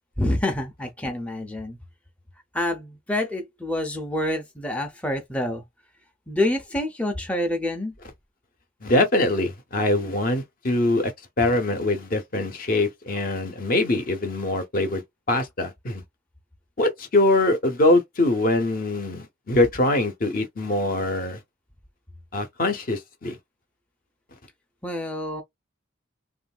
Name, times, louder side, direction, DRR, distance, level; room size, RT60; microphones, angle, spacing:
voice 1, 0.2-1.8 2.5-5.6 6.3-7.9 24.8-25.4, left 1 dB, 5° left, 0.5 m, -27 dB
voice 2, 8.8-11.1 11.4-15.0 15.3-16.0 16.8-21.4 22.3-23.4, left 2 dB, 45° left, 0.7 m, -23 dB
3.1 x 2.5 x 2.3 m
head